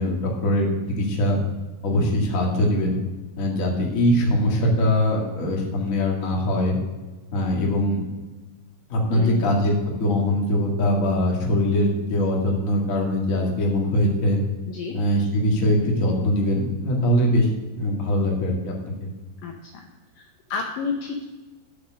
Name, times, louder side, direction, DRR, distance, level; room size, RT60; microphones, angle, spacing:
voice 1, 0.0-1.4 1.8-3.0 3.4-6.8 7.3-8.0 8.9-9.7 10.0-14.4 14.9-17.5 17.7-18.7 19.0-19.1, left 1 dB, 35° left, -2 dB, 1.2 m, -22 dB
voice 2, 9.1-9.6 14.7-15.0 19.4-19.9 20.2-21.2, left 5 dB, 75° left, 2 dB, 2.0 m, -31 dB
9.4 x 6.6 x 6.3 m, 1.2 s
omnidirectional pair, 4.8 m